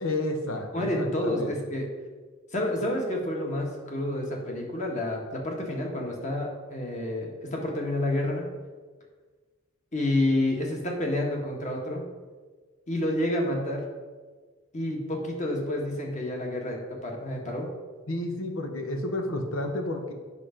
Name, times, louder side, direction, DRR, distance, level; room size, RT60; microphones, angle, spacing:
voice 1, 0.0-1.5 18.1-20.1, left 1 dB, 85° left, 5 dB, 1.1 m, -31 dB
voice 2, 0.7-1.9 2.5-8.5 9.9-12.0 12.9-13.9 14.7-17.7, left 1 dB, 35° left, 0 dB, 1.6 m, -29 dB
8.3 x 6.0 x 5.1 m, 1.4 s
head